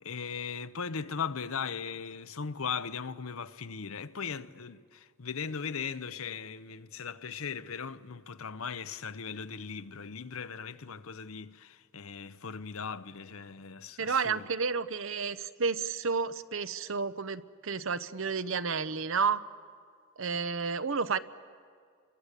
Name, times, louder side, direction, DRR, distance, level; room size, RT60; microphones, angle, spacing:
voice 1, 0.0-14.5, left 6 dB, 75° left, 0.8 m, -38 dB
voice 2, 14.0-19.5 20.2-21.2, right 5 dB, 65° right, 0.8 m, -31 dB
28.5 x 23.0 x 8.2 m
head